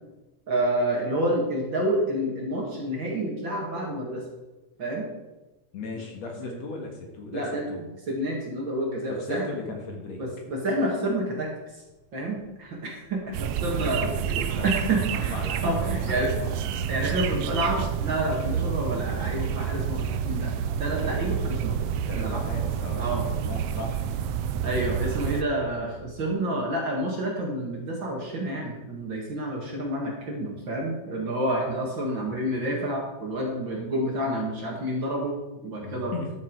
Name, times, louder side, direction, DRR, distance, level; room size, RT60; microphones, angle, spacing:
voice 1, 0.5-4.2 4.8-5.1 5.9-6.1 6.4-6.6 7.3-7.7 8.1-9.5 10.2-11.5 12.1-14.1 14.6-16.3 16.9-20.5 20.8-21.8 22.1-22.4 23.0-23.3 24.6-36.1, right 1 dB, 45° right, -1 dB, 2.2 m, -29 dB
voice 2, 5.7-7.8 9.1-10.2 13.8-13.9 14.3-14.8 15.1-16.7 22.1-24.3 35.8-36.3, left 3 dB, 60° left, 2 dB, 2.7 m, -37 dB
sound 1, 11.6-26.3, left 2 dB, 35° left, 3.2 m, -52 dB
sound 2, 13.3-25.4, right 8 dB, 85° right, 1.4 m, -29 dB
13.0 x 7.2 x 4.6 m, 1.1 s
omnidirectional pair, 3.5 m